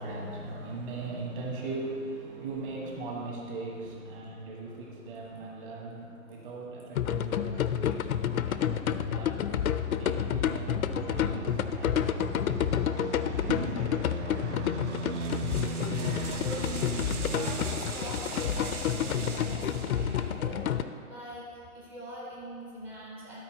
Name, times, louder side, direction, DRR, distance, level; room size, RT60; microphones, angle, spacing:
voice 1, 0.0-9.5 10.0-12.2 13.5-13.8, right 3 dB, 35° right, -1 dB, 1.6 m, -39 dB
sound 1, 6.9-20.8, left 9 dB, 75° left, 0.6 m, -30 dB
sound 2, 7.8-20.9, right 5 dB, 50° right, 0.8 m, -40 dB
sound 3, 14.8-20.4, right 4 dB, 90° right, 0.9 m, -42 dB
voice 2, 15.7-20.7 21.1-23.4, equal, 5° right, -6 dB, 0.5 m, -43 dB
12.5 x 4.3 x 4.2 m, 2.3 s
figure-of-eight pair, 135°, 43 cm